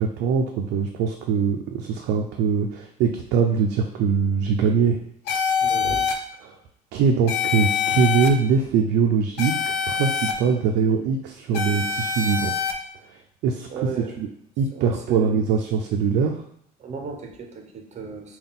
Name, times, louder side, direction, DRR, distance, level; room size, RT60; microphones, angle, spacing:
voice 1, 0.0-5.0 6.4-6.6 6.9-12.5 13.4-13.7 14.2-14.3 14.6-16.4, right 6 dB, 85° right, 3 dB, 0.4 m, -22 dB
sound 1, 5.3-6.1 7.3-8.3 9.4-10.3 11.5-12.7, left 7 dB, 85° left, 0.5 m, -24 dB
voice 2, 5.6-6.1 13.7-14.2 14.7-15.4 16.8-18.4, right 5 dB, 40° right, 3 dB, 0.6 m, -35 dB
3.8 x 2.3 x 3.6 m, 0.69 s
cardioid pair, 110°, 17 cm